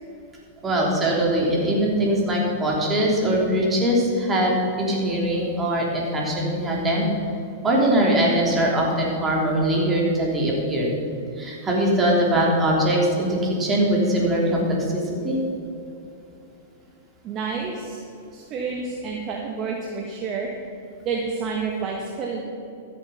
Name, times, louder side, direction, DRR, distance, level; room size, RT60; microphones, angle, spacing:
voice 1, 0.6-7.1 7.6-10.9 11.4-15.4, right 1 dB, 20° right, -3 dB, 3.3 m, -22 dB
voice 2, 17.2-18.0 18.3-20.5 21.0-22.4, right 5 dB, 35° right, 0 dB, 1.5 m, -29 dB
13.5 x 7.8 x 5.8 m, 2.6 s
hypercardioid pair, 115°, 0 cm